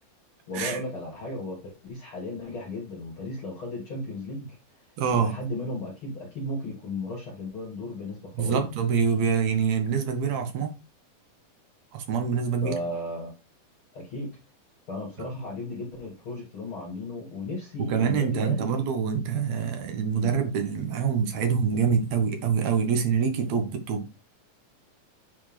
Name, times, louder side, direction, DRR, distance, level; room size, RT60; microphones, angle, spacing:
voice 1, 0.5-4.6 5.1-8.7 12.6-13.3 13.9-14.3 14.9-18.9 20.1-20.3, left 1 dB, 50° left, 1.9 m, -35 dB
voice 2, 5.0-5.4 8.4-10.7 11.9-12.8 17.8-24.1, right 6 dB, 65° right, 2.0 m, -25 dB
8.6 x 4.3 x 3.2 m
omnidirectional pair, 3.7 m